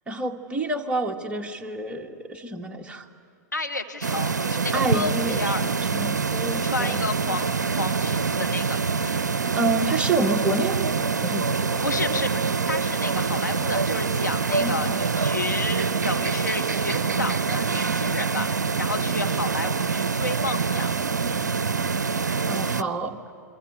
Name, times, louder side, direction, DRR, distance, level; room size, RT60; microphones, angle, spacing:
voice 1, 0.1-3.1 4.7-7.0 9.5-10.9 11.2-11.8 14.6-15.0 22.4-23.2, right 2 dB, 10° right, 3 dB, 1.8 m, -28 dB
voice 2, 3.5-5.6 6.6-9.2 11.8-20.9 21.2-21.5, left 2 dB, 90° left, 5 dB, 1.7 m, -31 dB
sound 1, 4.0-22.8, right 5 dB, 80° right, 0.6 m, -25 dB
27.0 x 23.0 x 9.1 m, 2.5 s
figure-of-eight pair, 100°, 9 cm